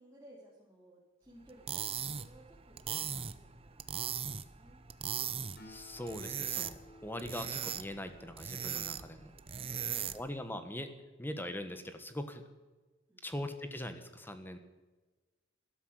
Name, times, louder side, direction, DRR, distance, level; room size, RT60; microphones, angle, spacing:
voice 1, 0.0-3.9 4.2-4.8 13.1-13.4, right 1 dB, 15° right, -6 dB, 3.4 m, -59 dB
sound 1, 1.5-10.4, right 8 dB, 30° right, 0.7 m, -39 dB
Acoustic guitar, 5.6-9.3, left 2 dB, 55° left, 4.5 m, -57 dB
voice 2, 5.6-9.3 10.1-10.9 11.2-12.4 13.2-14.6, left 1 dB, 10° left, 8 dB, 1.4 m, -41 dB
13.0 x 12.5 x 8.2 m, 1.2 s
head